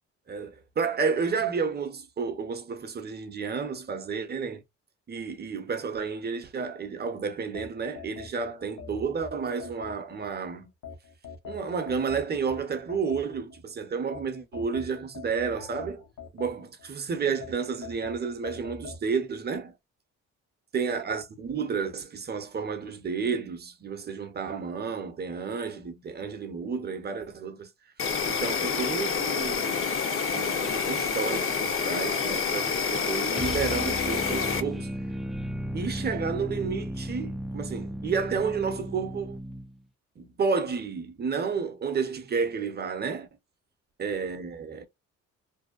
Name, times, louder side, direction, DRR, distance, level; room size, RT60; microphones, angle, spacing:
voice 1, 0.3-4.6 5.1-10.7 11.4-16.0 16.3-19.7 20.7-27.7 28.3-29.9 30.3-34.9 35.7-39.4 40.2-43.3 44.0-44.9, right 5 dB, 35° right, 0.7 m, -31 dB
sound 1, 7.5-10.3 10.8-13.6 14.1-16.9 17.4-19.0, left 5 dB, 75° left, 0.9 m, -43 dB
Insect, 28.0-34.6, left 5 dB, 45° left, 0.7 m, -28 dB
sound 2, 33.3-39.8, equal, ahead, 0.3 m, -35 dB
2.7 x 2.1 x 2.4 m
cardioid pair, 90°, 30 cm